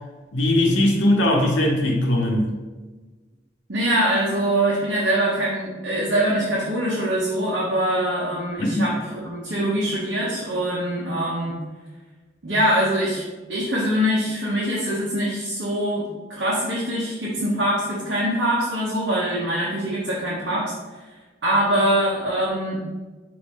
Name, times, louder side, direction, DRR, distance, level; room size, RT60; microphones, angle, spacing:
voice 1, 0.3-2.5 8.6-8.8, left 1 dB, 85° left, -1 dB, 0.9 m, -20 dB
voice 2, 3.7-11.6 12.4-13.2 13.5-20.7 21.0-21.1 21.4-22.8, right 1 dB, 70° right, -5 dB, 0.8 m, -23 dB
5.2 x 2.6 x 3.4 m, 1.3 s
head